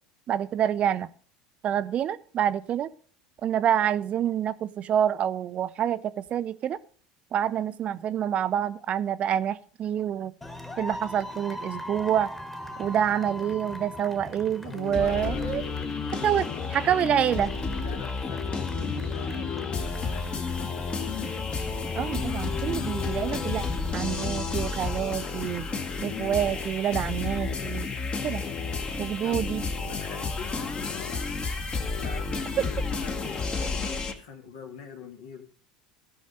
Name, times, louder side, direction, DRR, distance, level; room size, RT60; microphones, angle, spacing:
voice 1, 0.3-1.1 1.6-2.9 3.4-6.8 7.3-10.3 10.8-12.3 12.8-15.6 16.2-17.5 21.9-25.7 26.0-27.9 28.2-28.4 29.0-29.6, right 9 dB, 40° right, 15 dB, 0.5 m, -27 dB
sound 1, 10.4-24.7, left 3 dB, 10° left, 1.5 m, -39 dB
voice 2, 14.6-16.4 17.8-20.7 23.4-23.9 29.2-29.5 29.8-31.2 31.8-35.4, left 5 dB, 70° left, 4 dB, 2.1 m, -43 dB
sound 2, 14.9-34.1, left 4 dB, 30° left, 1.3 m, -31 dB
15.5 x 5.4 x 5.3 m, 0.43 s
figure-of-eight pair, 75°, 3 cm